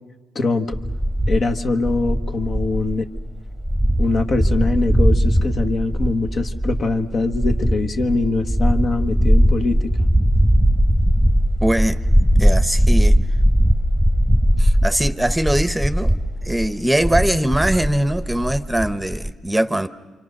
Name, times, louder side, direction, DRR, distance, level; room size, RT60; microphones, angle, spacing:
voice 1, 0.3-0.8 1.3-3.1 4.0-9.9, left 3 dB, 55° left, 1.4 m, -22 dB
sound 1, 0.7-19.3, equal, 10° left, 1.4 m, -19 dB
voice 2, 11.6-12.0 12.4-13.2 14.6-16.1 16.4-19.9, right 1 dB, 10° right, 0.9 m, -21 dB
27.5 x 25.0 x 6.6 m
supercardioid pair, 65°, 0 cm